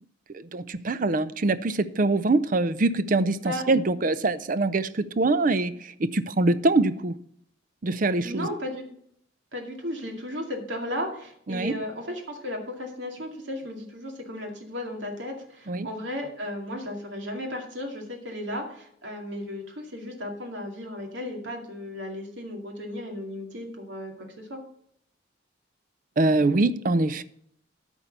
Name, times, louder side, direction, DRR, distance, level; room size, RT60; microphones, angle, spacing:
voice 1, 0.3-7.2 7.8-8.5 11.5-11.7 15.7-15.9 26.2-27.2, right 2 dB, 40° right, 0.5 m, -24 dB
voice 2, 8.2-8.8 9.5-24.6, left 1 dB, 70° right, 2.3 m, -35 dB
13.0 x 4.5 x 6.8 m
head